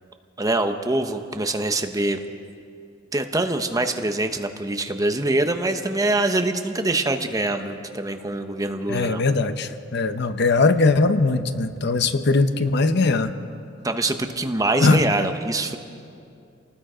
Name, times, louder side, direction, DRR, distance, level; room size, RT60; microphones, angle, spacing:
voice 1, 0.4-2.2 3.1-9.2 13.8-15.8, right 2 dB, 20° right, 6 dB, 1.0 m, -24 dB
voice 2, 8.9-13.3 14.8-15.0, left 3 dB, 60° left, 9 dB, 0.9 m, -20 dB
27.5 x 19.5 x 5.1 m, 2.5 s
head